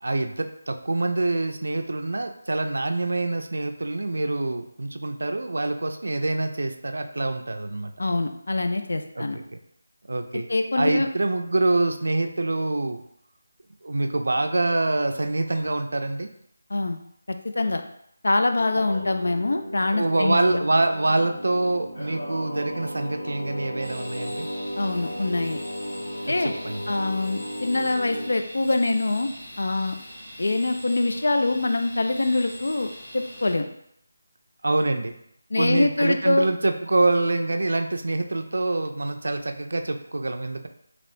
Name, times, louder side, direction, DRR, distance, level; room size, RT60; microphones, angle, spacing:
voice 1, 0.0-7.9 9.2-9.6 10.1-10.5 10.8-13.0 13.8-16.3 19.9-24.5 26.3-26.8 34.6-35.2 35.6-40.7, right 2 dB, 70° right, 7 dB, 0.3 m, -25 dB
voice 2, 8.0-9.4 10.5-11.1 16.7-17.0 17.4-17.8 18.2-20.6 24.8-25.6 26.3-26.5 26.9-29.3 29.6-30.0 30.4-33.7 35.5-36.5, left 2 dB, 70° left, 6 dB, 0.4 m, -24 dB
Singing, 18.6-28.3, equal, 55° left, 1.1 m, -35 dB
sound 1, 23.8-33.5, equal, 15° left, 0.7 m, -42 dB
3.1 x 2.9 x 2.6 m, 0.71 s
figure-of-eight pair, 175°, 0 cm